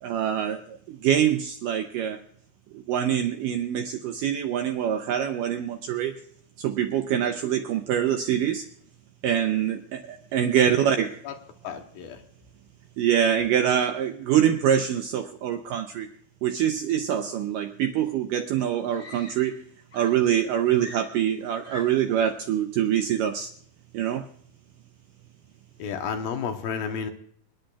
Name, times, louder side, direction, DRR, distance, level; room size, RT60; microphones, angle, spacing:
voice 1, 0.0-2.2 2.7-6.1 6.6-8.7 9.2-11.2 13.0-16.1 16.4-19.6 19.9-23.5 23.9-24.3, right 9 dB, 80° right, 6 dB, 1.9 m, -25 dB
voice 2, 11.6-12.2 25.8-27.1, left 6 dB, 70° left, 5 dB, 2.6 m, -32 dB
Screaming, 18.1-18.2 18.9-19.7 19.9-22.2 23.2-23.5, left 1 dB, 20° left, 2.2 m, -45 dB
27.0 x 10.5 x 2.3 m, 0.64 s
omnidirectional pair, 4.5 m